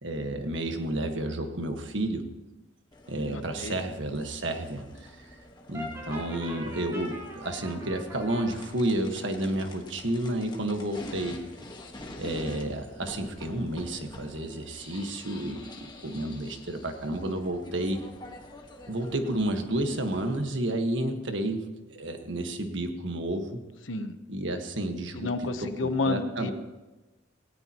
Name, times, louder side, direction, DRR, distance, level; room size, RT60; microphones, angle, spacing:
voice 1, 0.0-2.3 3.1-5.3 5.7-11.4 12.2-18.0 18.9-21.6 21.9-23.6 24.3-25.3 25.8-26.5, right 1 dB, 75° right, 5 dB, 1.5 m, -31 dB
sound 1, 2.9-20.4, left 1 dB, 25° left, 1.5 m, -47 dB
voice 2, 3.3-3.8 23.9-24.2 25.1-26.5, left 3 dB, 85° left, 9 dB, 1.0 m, -30 dB
Brass instrument, 5.7-8.5, equal, 15° right, 4.3 m, -41 dB
18.0 x 18.0 x 3.0 m, 1.1 s
head